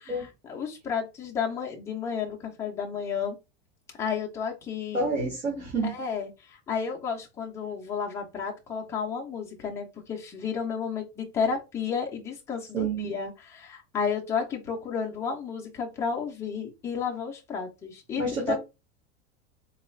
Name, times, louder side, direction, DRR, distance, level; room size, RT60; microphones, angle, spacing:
voice 1, 0.0-3.4 4.0-5.1 5.8-18.5, left 6 dB, 10° left, -1 dB, 0.4 m, -32 dB
voice 2, 4.9-5.9 12.7-13.1 18.2-18.5, right 3 dB, 20° right, -3 dB, 0.8 m, -28 dB
3.9 x 2.3 x 3.0 m, 0.26 s
supercardioid pair, 160°, 37 cm